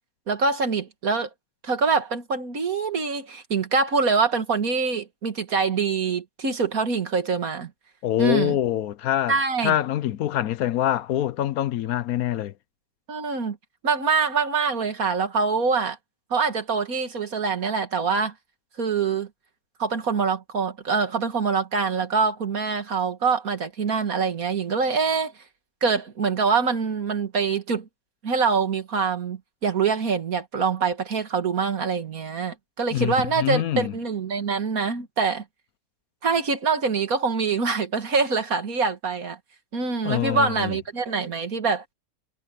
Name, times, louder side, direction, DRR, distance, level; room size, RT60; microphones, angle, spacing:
voice 1, 0.3-1.3 1.6-7.7 8.2-8.6 9.3-9.7 13.1-13.6 13.8-16.0 16.3-18.3 18.8-19.3 19.8-25.3 25.8-27.9 28.2-35.4 36.2-39.4 39.7-41.8, right 5 dB, 65° right, 2.3 m, -24 dB
voice 2, 8.0-9.4 9.6-12.5 32.9-33.9 40.0-40.8, left 12 dB, 70° left, 1.1 m, -25 dB
omnidirectional pair, 1.6 m